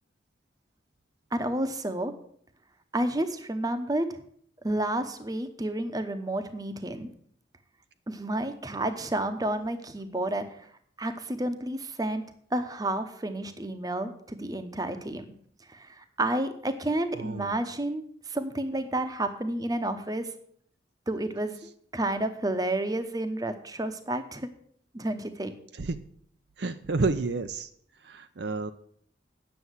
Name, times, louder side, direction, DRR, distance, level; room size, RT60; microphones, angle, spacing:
voice 1, 1.3-2.1 2.9-4.2 4.6-7.1 8.1-10.6 11.0-12.2 12.5-15.3 15.7-20.3 21.1-21.6 21.9-24.5 24.9-25.5, right 1 dB, 20° right, 9 dB, 0.9 m, -30 dB
voice 2, 17.1-17.5 25.7-26.0 26.6-27.7 28.0-28.7, right 3 dB, 60° right, 9 dB, 0.6 m, -30 dB
9.3 x 6.9 x 8.0 m, 0.62 s
head